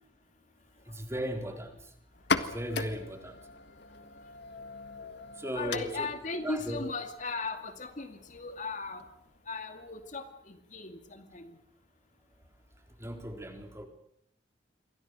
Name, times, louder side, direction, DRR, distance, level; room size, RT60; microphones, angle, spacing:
voice 1, 0.9-1.8 2.4-3.4 5.4-6.1 6.4-6.8 13.0-13.9, equal, 15° right, 4 dB, 4.0 m, -36 dB
sound 1, 2.1-9.6, left 4 dB, 70° left, 1.7 m, -39 dB
voice 2, 5.5-9.0 9.5-11.6, left 3 dB, 45° left, 7 dB, 2.4 m, -37 dB
28.5 x 24.0 x 6.4 m, 0.70 s
head